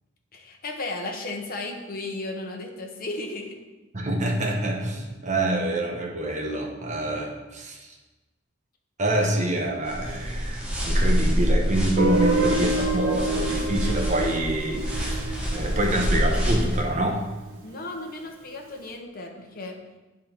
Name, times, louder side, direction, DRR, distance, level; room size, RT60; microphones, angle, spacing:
voice 1, 0.3-3.6 17.6-19.8, left 2 dB, 50° left, 2 dB, 1.0 m, -34 dB
voice 2, 3.9-7.9 9.0-17.2, right 1 dB, 40° right, 0 dB, 1.1 m, -26 dB
sound 1, 9.9-16.8, equal, 5° right, 1.2 m, -26 dB
Guitar, 12.0-16.8, right 2 dB, 80° right, 1.2 m, -28 dB
9.0 x 3.7 x 4.4 m, 1.1 s
head